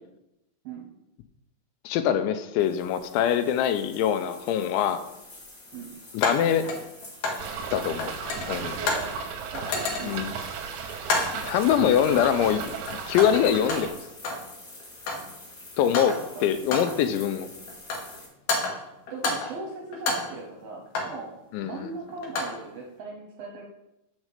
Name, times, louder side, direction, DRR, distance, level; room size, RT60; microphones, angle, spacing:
voice 1, 1.9-5.0 6.1-6.7 7.7-8.1 8.5-8.8 10.0-10.3 11.3-12.6 13.1-13.9 15.8-16.2 16.4-17.5 21.5-21.9, left 9 dB, 85° left, 10 dB, 2.9 m, -23 dB
sound 1, 2.6-18.3, left 2 dB, 25° left, 2.1 m, -47 dB
sound 2, 4.0-4.1 6.2-7.5 7.8-9.2 9.5-10.3 11.0-11.5 12.2-12.6 12.9-14.5 14.8-15.4 15.8-16.3 16.7-17.1 17.7-18.2 18.5-19.6 19.9-21.2 22.1-22.6, left 3 dB, 65° left, 2.2 m, -30 dB
sound 3, 7.4-13.9, right 6 dB, 90° right, 3.4 m, -35 dB
voice 2, 8.3-9.1 9.5-10.2 16.2-16.5 19.1-23.7, right 3 dB, 70° right, 1 dB, 2.2 m, -39 dB
7.4 x 6.4 x 6.7 m, 0.88 s
omnidirectional pair, 5.4 m